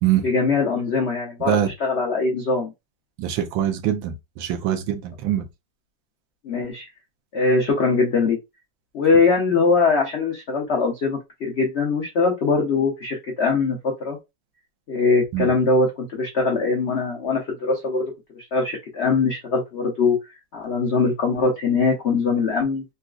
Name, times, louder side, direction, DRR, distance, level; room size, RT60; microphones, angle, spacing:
voice 1, 0.2-2.7 6.4-6.9 7.3-8.4 8.9-14.2 14.9-20.2 20.5-22.8, left 4 dB, 75° left, 0.6 m, -22 dB
voice 2, 3.2-5.4 15.3-15.5, right 11 dB, 80° right, 1.4 m, -23 dB
3.9 x 2.4 x 2.3 m
omnidirectional pair, 2.1 m